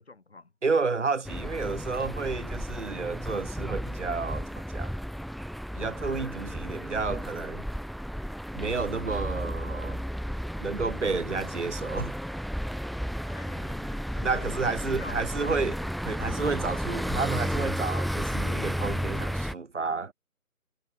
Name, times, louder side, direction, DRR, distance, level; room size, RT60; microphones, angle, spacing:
voice 1, 0.0-0.5 13.3-15.6, left 3 dB, 45° left, 7.0 m, -47 dB
voice 2, 0.6-4.9 5.7-7.6 8.5-10.0 10.6-12.2 14.2-15.8 16.0-20.1, right 4 dB, 55° right, 1.4 m, -31 dB
sound 1, 1.2-19.5, equal, ahead, 0.3 m, -33 dB
figure-of-eight pair, 175°, 44 cm